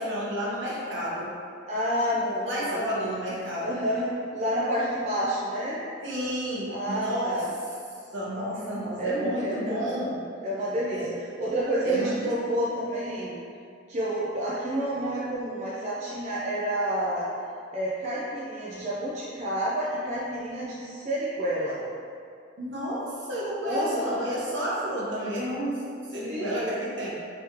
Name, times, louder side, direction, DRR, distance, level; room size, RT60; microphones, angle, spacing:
voice 1, 0.0-1.3 2.4-3.8 6.0-7.5 8.1-10.2 10.9-11.1 11.8-12.3 22.6-27.1, equal, 65° right, -6 dB, 0.9 m, -31 dB
voice 2, 1.7-2.8 3.6-4.1 4.3-5.8 6.7-7.5 8.3-9.8 10.4-11.0 11.4-13.4 13.9-17.3 17.7-21.8 23.6-24.2 26.3-26.8, equal, 40° right, -7 dB, 0.4 m, -29 dB
3.4 x 3.1 x 2.8 m, 2.4 s
head